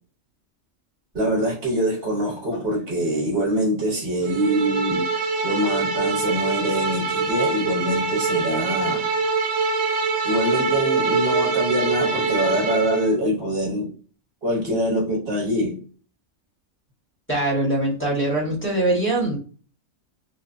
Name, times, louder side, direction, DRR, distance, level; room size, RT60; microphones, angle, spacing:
voice 1, 1.1-5.1 5.4-9.1 10.2-13.9 14.4-15.8, equal, 50° right, 1.3 m, -24 dB
sound 1, 4.2-13.1, right 4 dB, 75° right, 0.9 m, -24 dB
voice 2, 17.3-19.4, right 2 dB, 10° left, 1.0 m, -22 dB
3.1 x 2.0 x 2.4 m
omnidirectional pair, 1.3 m